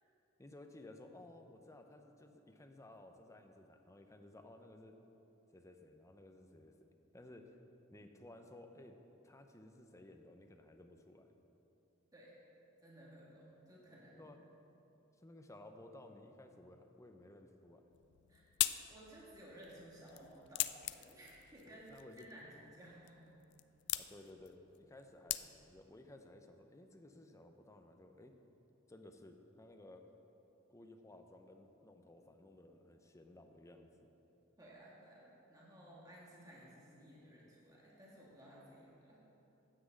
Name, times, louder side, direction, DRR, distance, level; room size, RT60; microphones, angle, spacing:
voice 1, 0.4-5.0 5.5-6.8 7.1-7.6 7.9-9.0 9.2-11.3 13.8-14.4 15.2-17.9 21.6-22.3 24.0-28.3 28.9-30.1 30.7-34.1, left 1 dB, 15° left, 5 dB, 0.6 m, -57 dB
voice 2, 12.8-14.3 18.3-23.3 34.6-39.2, right 1 dB, 20° right, -5 dB, 1.5 m, -57 dB
sound 1, 17.9-25.9, left 15 dB, 60° left, 0.3 m, -43 dB
9.7 x 6.0 x 7.4 m, 2.9 s
head